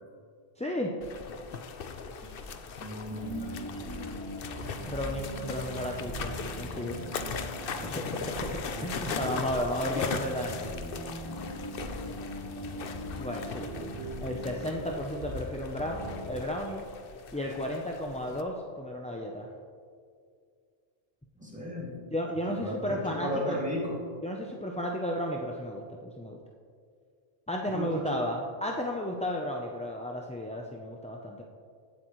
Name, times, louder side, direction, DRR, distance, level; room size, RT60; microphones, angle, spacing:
voice 1, 0.6-0.9 4.9-7.0 7.9-10.7 13.2-13.7 14.2-16.8 17.3-19.5 22.1-23.6 24.2-26.4 27.5-31.4, left 1 dB, 10° left, -1 dB, 0.5 m, -33 dB
sound 1, 1.0-18.4, left 6 dB, 65° left, 0.9 m, -40 dB
voice 2, 2.8-4.1 21.4-22.0 22.6-24.0 27.7-28.2, equal, 5° right, -6 dB, 2.5 m, -35 dB
sound 2, 3.1-15.5 15.8-16.3, equal, 70° right, 2.2 m, -40 dB
17.0 x 7.7 x 3.1 m, 2.2 s
omnidirectional pair, 1.0 m